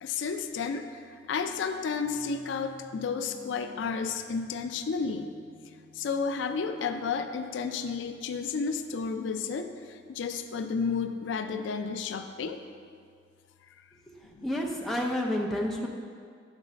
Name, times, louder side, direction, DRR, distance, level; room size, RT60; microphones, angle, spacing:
voice 1, 0.0-5.3 5.9-12.6 14.3-14.5, left 5 dB, 75° left, 8 dB, 0.3 m, -32 dB
sound 1, 1.0-7.0, left 4 dB, 20° left, 1.0 m, -54 dB
voice 2, 14.2-15.9, left 1 dB, ahead, -2 dB, 0.4 m, -30 dB
7.3 x 3.1 x 5.1 m, 2.1 s
head